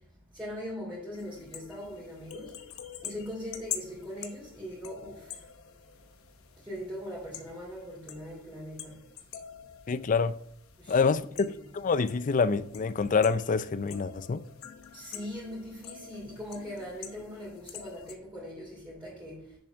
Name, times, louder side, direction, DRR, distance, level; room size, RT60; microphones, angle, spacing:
voice 1, 0.3-2.6 3.0-5.4 6.6-9.0 10.8-11.5 14.9-19.6, equal, 5° right, 2.8 m, -41 dB
sound 1, 1.1-18.1, left 9 dB, 65° left, 1.0 m, -46 dB
voice 2, 9.9-10.3 10.9-11.3 11.7-14.4, left 5 dB, 35° left, 0.4 m, -26 dB
8.0 x 7.0 x 3.5 m
head